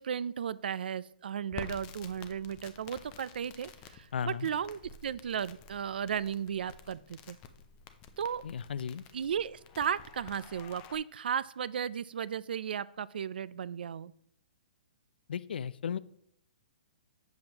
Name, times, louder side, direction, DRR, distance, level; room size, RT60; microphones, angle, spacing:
voice 1, 0.0-7.4 8.2-8.4 9.1-14.1, right 8 dB, 80° right, 19 dB, 0.3 m, -35 dB
Crackle, 1.5-11.0, left 6 dB, 20° left, 0.4 m, -50 dB
voice 2, 4.1-4.5 8.4-9.0 15.3-16.0, left 7 dB, 85° left, 17 dB, 0.4 m, -35 dB
7.7 x 7.1 x 2.9 m, 0.71 s
hypercardioid pair, 170°, 5 cm